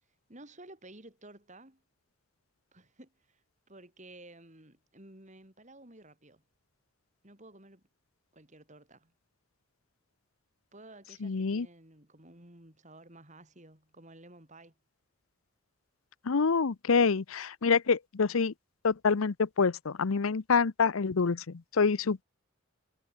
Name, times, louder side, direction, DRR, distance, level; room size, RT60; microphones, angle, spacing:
voice 1, 0.3-1.8 2.7-3.4 3.7-6.4 7.2-7.8 8.3-9.1 10.7-14.8, right 2 dB, 35° right, 5.9 m, -53 dB
voice 2, 11.2-11.7 16.2-18.5 18.8-22.2, left 5 dB, 85° left, 0.7 m, -27 dB
head